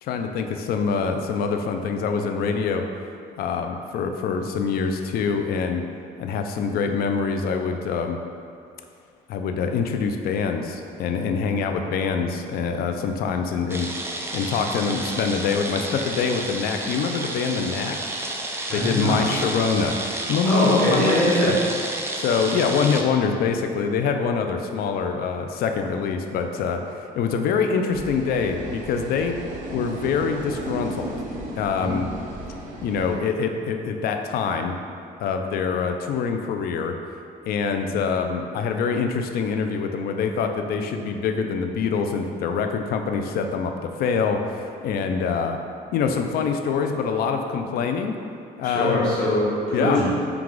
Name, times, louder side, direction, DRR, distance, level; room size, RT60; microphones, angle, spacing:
voice 1, 0.0-2.8 3.4-5.9 6.2-8.2 9.3-13.9 14.3-18.0 18.7-20.0 20.3-21.6 22.1-29.4 29.7-31.1 31.6-32.1 32.8-34.8 35.2-37.0 37.4-45.6 45.9-48.1 48.6-49.2 49.7-50.0, left 5 dB, 65° left, 5 dB, 0.4 m, -25 dB
sound 1, 13.7-23.0, right 2 dB, 15° right, 0.4 m, -31 dB
voice 2, 18.7-19.5 20.5-21.5 48.6-50.1, left 1 dB, 5° left, -9 dB, 1.5 m, -22 dB
sound 2, 27.9-33.2, right 1 dB, 50° right, 0.7 m, -35 dB
4.7 x 2.3 x 3.7 m, 2.4 s
cardioid pair, 110°, 17 cm